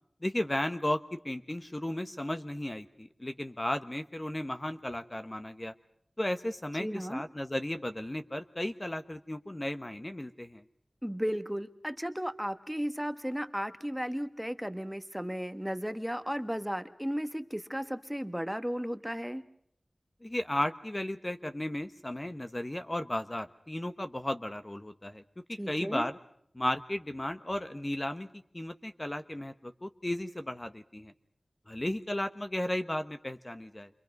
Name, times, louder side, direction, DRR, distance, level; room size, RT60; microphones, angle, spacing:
voice 1, 0.2-5.7 6.2-10.6 20.2-25.2 25.5-26.2 26.5-31.1 31.7-33.9, left 1 dB, 30° left, 8 dB, 1.1 m, -35 dB
voice 2, 6.7-7.2 11.0-19.4 25.6-26.1, equal, 5° right, 10 dB, 1.3 m, -35 dB
28.0 x 25.0 x 5.3 m, 0.69 s
cardioid pair, 40°, 0 cm